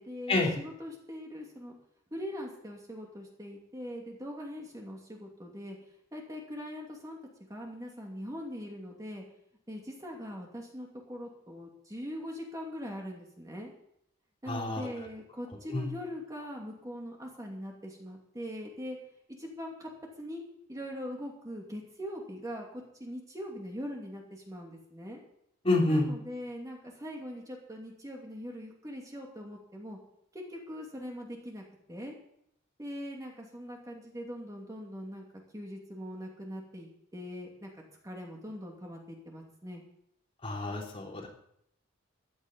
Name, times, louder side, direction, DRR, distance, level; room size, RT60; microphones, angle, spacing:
voice 1, 0.0-1.7 2.1-5.8 6.1-7.2 7.5-9.2 9.7-13.7 14.4-19.0 19.4-19.9 20.2-20.4 20.7-25.2 25.9-30.0 30.3-32.1 32.8-37.7 38.0-39.8, equal, 15° right, -1 dB, 2.7 m, -42 dB
voice 2, 14.5-14.9 15.7-15.9 25.6-26.1 40.4-41.3, left 2 dB, 30° left, -2 dB, 3.6 m, -28 dB
15.5 x 11.5 x 5.4 m, 0.72 s
head